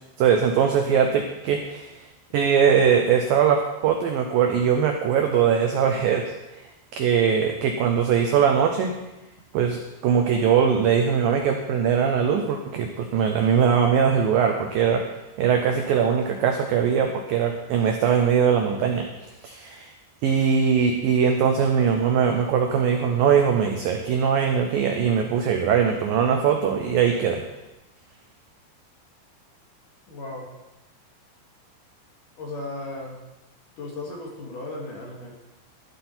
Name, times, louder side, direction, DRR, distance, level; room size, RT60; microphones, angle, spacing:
voice 1, 0.2-1.9 2.3-6.3 6.9-8.9 9.5-15.0 15.4-19.1 19.4-19.9 20.2-27.4, right 7 dB, 80° right, 3 dB, 2.0 m, -21 dB
voice 2, 30.1-30.5 32.4-33.2 33.8-35.4, left 2 dB, 55° left, -2 dB, 3.0 m, -35 dB
13.0 x 11.5 x 4.4 m, 1.0 s
omnidirectional pair, 5.4 m